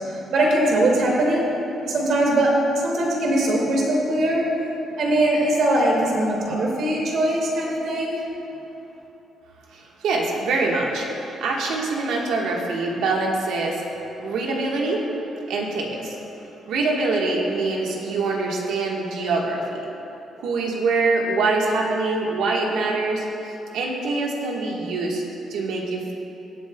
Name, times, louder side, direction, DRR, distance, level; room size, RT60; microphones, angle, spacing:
voice 1, 0.1-1.5 1.8-4.5 5.0-8.2, right 1 dB, 70° right, -2 dB, 2.1 m, -21 dB
voice 2, 9.7-13.8 14.2-15.1 15.5-16.2 16.7-19.8 20.4-25.2 25.5-26.1, right 3 dB, 90° right, -1 dB, 1.4 m, -24 dB
19.0 x 7.6 x 2.3 m, 3.0 s
cardioid pair, 110°, 0 cm